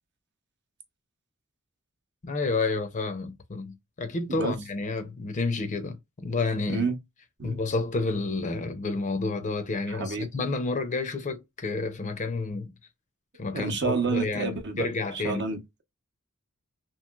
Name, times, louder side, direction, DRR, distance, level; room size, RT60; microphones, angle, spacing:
voice 1, 2.2-6.0 6.2-6.9 7.4-12.7 13.4-15.4, left 3 dB, 35° left, 0.5 m, -30 dB
voice 2, 6.7-7.0 7.4-7.6 9.9-10.3 13.5-14.9 15.1-15.8, right 4 dB, 55° right, 0.7 m, -29 dB
3.0 x 2.8 x 2.3 m
head